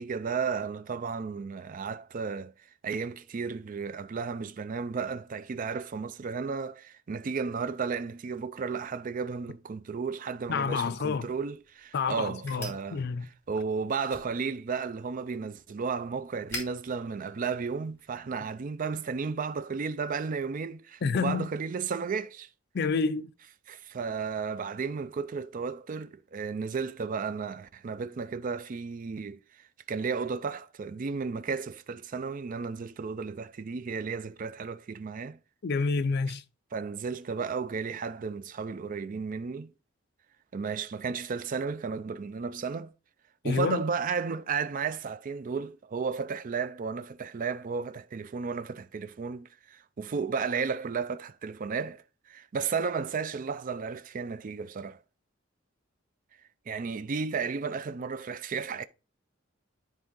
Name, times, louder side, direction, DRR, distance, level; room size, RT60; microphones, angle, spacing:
voice 1, 0.0-2.5 2.8-13.0 13.5-22.5 23.7-29.4 29.9-35.4 36.7-39.7 40.5-42.9 43.4-52.0 52.3-55.0 56.7-58.8, right 5 dB, 40° right, 0.4 m, -33 dB
voice 2, 10.5-11.3 11.9-13.3 21.0-21.5 22.7-23.3 35.6-36.4 43.4-43.8, left 4 dB, 55° left, 0.5 m, -28 dB
sound 1, 11.1-18.2, left 1 dB, 15° left, 3.2 m, -47 dB
10.5 x 3.6 x 3.7 m
head